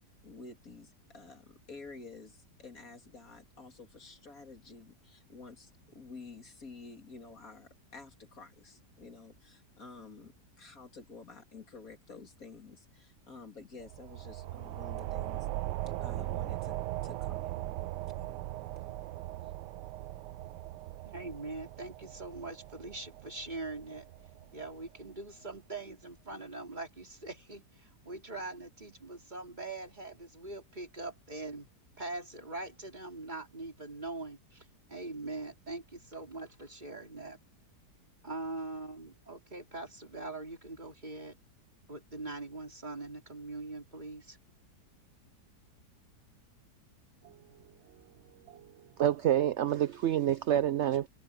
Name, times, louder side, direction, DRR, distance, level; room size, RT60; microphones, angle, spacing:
voice 1, 0.2-15.5 16.0-16.8 17.0-17.9 18.2-18.4 19.4-19.5, left 4 dB, 55° left, 3.2 m, -51 dB
sound 1, 13.8-25.0, right 16 dB, 85° right, 1.2 m, -39 dB
voice 2, 21.0-24.1 24.5-31.7 32.0-37.4 38.2-41.4 41.9-44.4, right 2 dB, 25° right, 3.5 m, -42 dB
voice 3, 49.0-51.1, right 11 dB, 65° right, 0.7 m, -28 dB
omnidirectional pair, 1.8 m